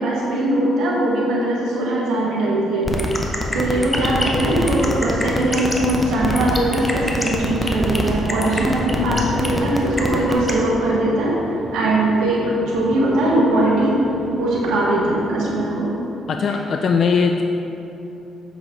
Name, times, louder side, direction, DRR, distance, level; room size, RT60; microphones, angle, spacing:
voice 1, 0.0-2.9 3.5-11.4 11.7-14.0 14.3-15.9, right 1 dB, 85° right, -4 dB, 1.3 m, -20 dB
sound 1, 2.9-10.5, left 1 dB, 10° left, 0.7 m, -23 dB
voice 2, 4.3-4.7 9.0-9.4 16.3-17.4, left 5 dB, 55° left, 4 dB, 0.3 m, -21 dB
sound 2, 8.4-15.8, right 2 dB, 45° right, 0.6 m, -36 dB
7.0 x 5.6 x 3.0 m, 2.9 s
cardioid pair, 90°, 0 cm